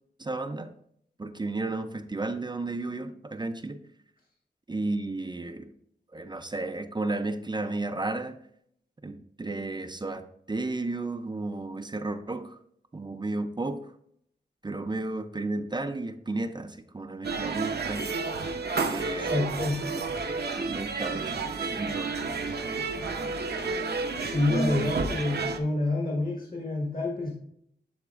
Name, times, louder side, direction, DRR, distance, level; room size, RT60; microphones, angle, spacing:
voice 1, 0.2-0.7 1.2-3.8 4.7-5.7 6.1-8.4 9.0-12.6 12.9-13.9 14.6-18.1 18.8-19.4 19.9-20.0 20.6-22.1 24.5-24.9, right 2 dB, 25° right, 9 dB, 0.4 m, -33 dB
sound 1, 17.2-25.6, right 4 dB, 60° right, 0.7 m, -31 dB
voice 2, 19.1-19.8 24.2-27.3, left 2 dB, 50° left, -2 dB, 1.6 m, -28 dB
11.5 x 4.1 x 2.4 m, 0.69 s
wide cardioid pair, 95°, 19 cm